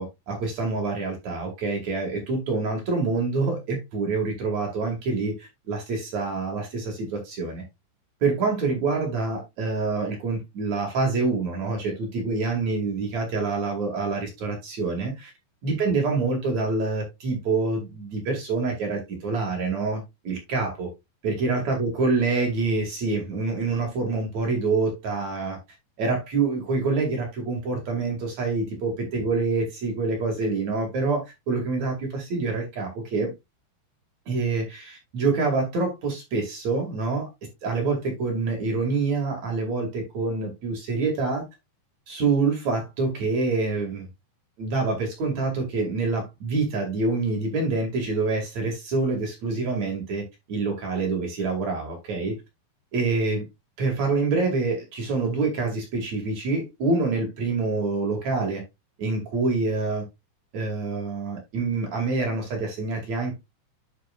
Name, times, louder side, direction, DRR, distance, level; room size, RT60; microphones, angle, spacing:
voice 1, 0.0-7.6 8.2-15.3 15.6-20.9 21.2-25.6 26.0-33.3 34.3-37.3 37.6-41.4 42.1-44.1 44.6-52.4 52.9-53.4 53.8-58.6 59.0-60.0 60.5-63.3, right 3 dB, 45° right, 2.7 m, -26 dB
11.0 x 5.4 x 2.4 m
omnidirectional pair, 5.5 m